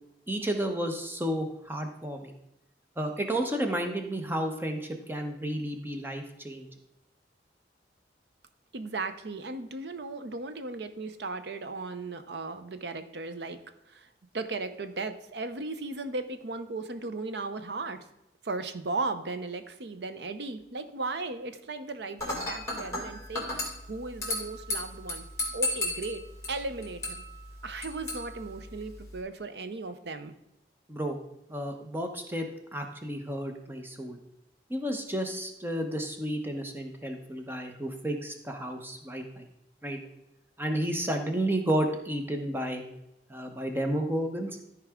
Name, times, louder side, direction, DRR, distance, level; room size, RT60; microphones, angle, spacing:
voice 1, 0.3-2.3 3.0-6.7 30.9-31.2 31.5-32.5 32.7-34.2 34.7-39.5 39.8-40.0 40.6-42.8 43.3-44.6, right 1 dB, 10° right, 4 dB, 0.9 m, -32 dB
voice 2, 8.7-13.6 13.9-14.1 14.3-18.1 18.4-23.6 23.9-25.2 25.5-27.2 27.6-30.3, right 3 dB, 75° right, 10 dB, 0.7 m, -36 dB
Dishes pots and pans / Glass, 22.2-29.2, left 2 dB, 15° left, 2.2 m, -35 dB
13.5 x 4.8 x 3.6 m, 0.87 s
head